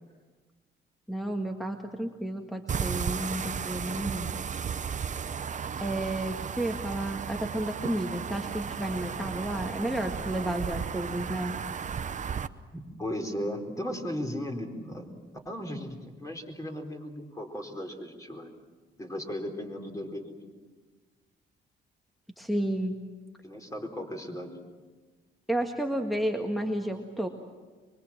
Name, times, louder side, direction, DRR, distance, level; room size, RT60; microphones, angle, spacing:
voice 1, 1.1-4.3 5.8-11.5 22.4-23.0 25.5-27.3, right 1 dB, ahead, 4 dB, 1.7 m, -31 dB
sound 1, 2.7-12.5, right 7 dB, 40° right, 0.8 m, -34 dB
voice 2, 12.7-15.1 15.4-18.5 19.0-20.5 23.4-24.6, left 1 dB, 15° left, 3 dB, 4.3 m, -36 dB
24.5 x 23.0 x 7.5 m, 1.4 s
cardioid pair, 90°, 20 cm